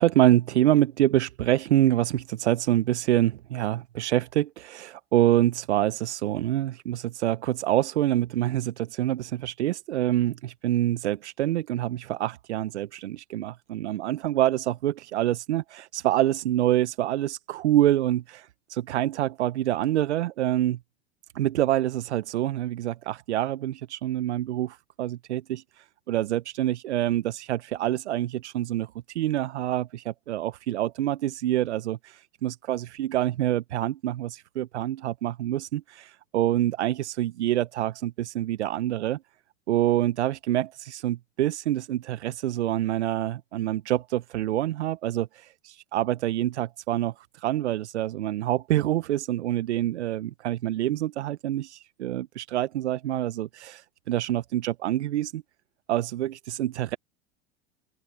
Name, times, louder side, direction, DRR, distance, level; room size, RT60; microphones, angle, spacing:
voice 1, 0.0-20.8 21.3-39.2 39.7-55.4 55.9-57.0, right 13 dB, 80° right, 0.9 m, -26 dB
open air
hypercardioid pair, 95°, 33 cm